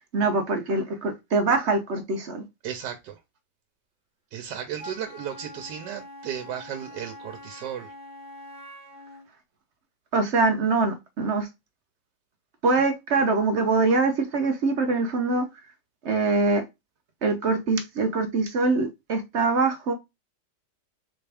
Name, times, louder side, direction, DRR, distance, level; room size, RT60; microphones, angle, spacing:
voice 1, 0.1-2.4 10.1-11.5 12.6-15.5 16.0-16.6 17.2-19.9, right 3 dB, 60° right, 0.7 m, -23 dB
voice 2, 2.6-3.2 4.3-7.9, right 9 dB, 80° right, 1.2 m, -35 dB
Wind instrument woodwind instrument, 4.8-9.3, left 1 dB, 5° right, 1.2 m, -44 dB
4.2 x 3.4 x 3.3 m
omnidirectional pair, 1.9 m